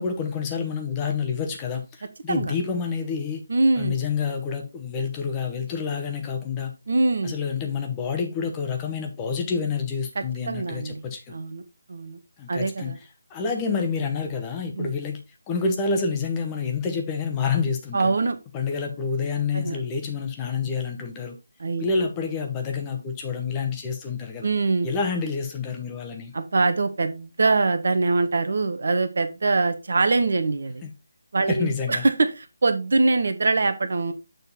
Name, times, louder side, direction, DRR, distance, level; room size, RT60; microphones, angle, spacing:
voice 1, 0.0-3.4 3.8-6.7 7.2-11.3 12.4-13.0 13.3-18.1 18.5-21.4 21.8-24.5 24.8-26.3 30.8-30.9 31.5-32.0, left 5 dB, 20° left, 1.0 m, -28 dB
voice 2, 3.5-4.0 6.9-7.4 10.1-11.0 11.3-11.6 11.9-12.2 12.5-13.0 14.8-14.9 17.9-18.4 19.5-19.8 21.6-21.8 24.4-24.9 26.3-30.8 31.3-34.1, right 3 dB, 60° right, 1.1 m, -23 dB
6.9 x 3.9 x 4.2 m
figure-of-eight pair, 155°, 0 cm